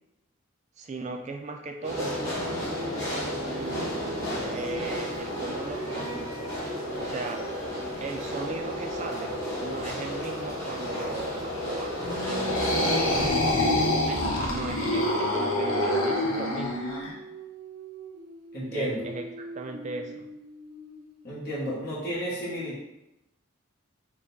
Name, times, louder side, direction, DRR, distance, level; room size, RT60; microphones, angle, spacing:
voice 1, 0.8-2.2 3.5-6.6 7.0-7.5 8.0-12.9 13.6-16.9 18.7-20.3, right 3 dB, 30° right, 4 dB, 0.3 m, -38 dB
sound 1, 1.8-13.3, equal, 15° left, 1.2 m, -32 dB
sound 2, 5.0-7.9 9.0-13.8 15.2-21.3, right 2 dB, 80° right, 0.7 m, -45 dB
voice 2, 12.0-13.7 18.5-19.0 21.2-22.8, equal, 45° left, -8 dB, 1.0 m, -33 dB
sound 3, 12.3-17.1, left 1 dB, 75° left, 0.8 m, -26 dB
3.6 x 2.3 x 3.9 m, 0.93 s
head